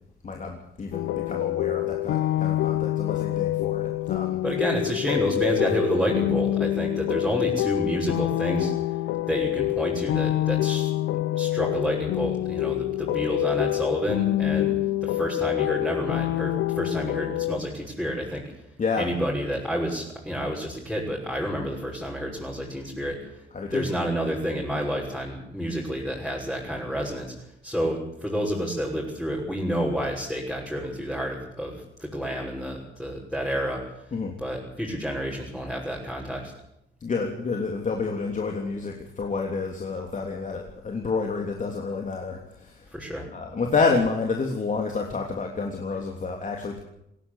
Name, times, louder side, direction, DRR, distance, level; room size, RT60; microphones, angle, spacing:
voice 1, 0.2-4.4 14.5-14.7 18.8-19.0 23.5-23.9 34.1-34.3 37.0-42.9 43.3-46.8, left 4 dB, 40° left, 1 dB, 3.2 m, -29 dB
sound 1, 0.9-17.6, left 15 dB, 85° left, 0.7 m, -26 dB
voice 2, 4.4-8.7 9.3-10.9 11.3-14.7 15.0-18.4 19.0-23.4 23.7-27.3 27.6-33.8 34.4-36.5 42.9-43.2, equal, 5° left, -5 dB, 6.2 m, -29 dB
20.0 x 17.0 x 8.3 m, 0.80 s
cardioid pair, 90°, 20 cm